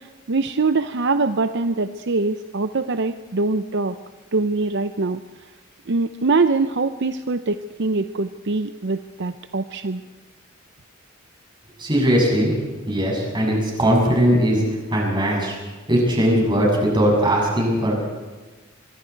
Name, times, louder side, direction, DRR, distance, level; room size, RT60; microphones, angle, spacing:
voice 1, 0.0-4.0 4.3-5.5 5.9-10.0, right 3 dB, 60° right, 10 dB, 0.7 m, -23 dB
voice 2, 11.8-12.5 12.9-14.6 14.9-15.6 15.9-18.0, equal, 25° right, -1 dB, 7.1 m, -19 dB
25.5 x 23.5 x 4.7 m, 1.2 s
head